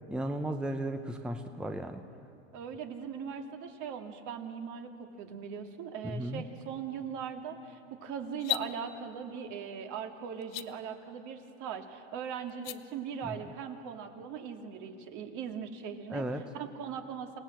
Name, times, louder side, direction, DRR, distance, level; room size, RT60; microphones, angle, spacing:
voice 1, 0.1-2.0 6.0-6.4 13.2-13.3 16.1-16.4, right 1 dB, ahead, 7 dB, 0.8 m, -35 dB
voice 2, 2.5-17.4, right 7 dB, 50° right, 5 dB, 2.2 m, -40 dB
sound 1, 8.3-8.7 10.4-10.7 12.5-12.8, left 15 dB, 45° left, 0.7 m, -33 dB
27.0 x 17.5 x 7.7 m, 2.6 s
supercardioid pair, 115°, 38 cm